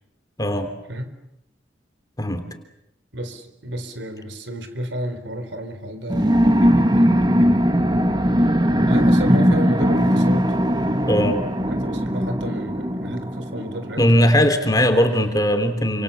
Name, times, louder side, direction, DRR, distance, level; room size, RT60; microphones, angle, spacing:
voice 1, 0.4-0.7 2.2-2.5 11.1-11.4 14.0-16.0, equal, 20° left, 7 dB, 3.2 m, -19 dB
voice 2, 3.1-8.1 8.9-10.6 11.7-14.9, equal, 80° right, 9 dB, 4.2 m, -31 dB
sound 1, 6.1-14.3, equal, 25° right, 1.6 m, -19 dB
29.0 x 26.5 x 7.1 m, 0.84 s
head